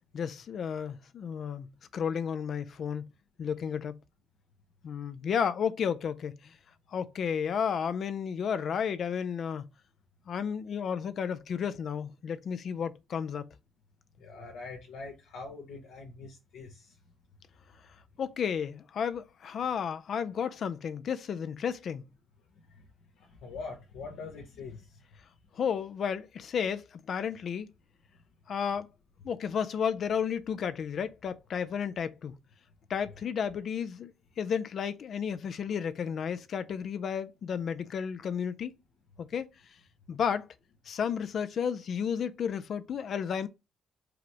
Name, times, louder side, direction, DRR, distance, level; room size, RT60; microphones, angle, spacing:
voice 1, 0.1-3.1 3.4-4.0 4.8-6.5 6.9-9.7 10.3-13.5 18.2-22.0 25.6-27.7 28.5-28.9 29.2-32.4 32.9-38.8 39.2-39.5 40.1-40.5 40.9-43.5, left 7 dB, 60° left, 0.4 m, -32 dB
voice 2, 14.2-16.9 22.7-22.9 23.1-25.0, left 4 dB, 85° left, 1.0 m, -43 dB
4.8 x 2.0 x 4.5 m
cardioid pair, 90°, 0 cm